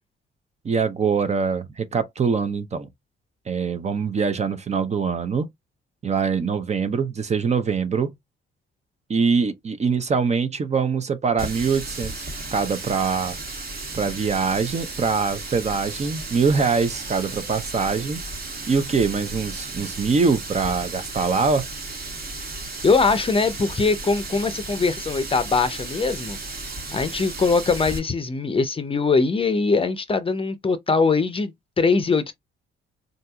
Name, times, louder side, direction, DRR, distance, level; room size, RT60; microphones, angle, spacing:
voice 1, 0.6-2.9 3.5-5.5 6.0-8.1 9.1-12.2 12.5-13.4 13.9-18.2 18.7-21.7, right 5 dB, 35° right, 0.6 m, -23 dB
Water tap faucet, 11.4-28.0, right 3 dB, 50° right, 1.4 m, -34 dB
voice 2, 22.8-26.4 26.9-32.3, left 4 dB, 25° left, 0.6 m, -22 dB
3.8 x 2.7 x 2.3 m
cardioid pair, 90°, 20 cm